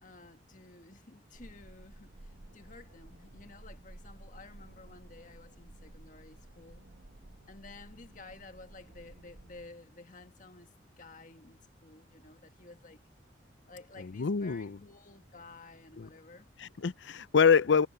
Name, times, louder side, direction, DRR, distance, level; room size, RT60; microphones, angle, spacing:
voice 1, 0.0-6.9 7.5-13.0 13.7-16.5, left 3 dB, 45° left, 1.6 m, -53 dB
sound 1, 1.3-9.7, right 1 dB, 75° right, 1.2 m, -53 dB
voice 2, 14.0-14.8 16.0-16.1 16.6-17.9, left 6 dB, 70° left, 0.5 m, -26 dB
head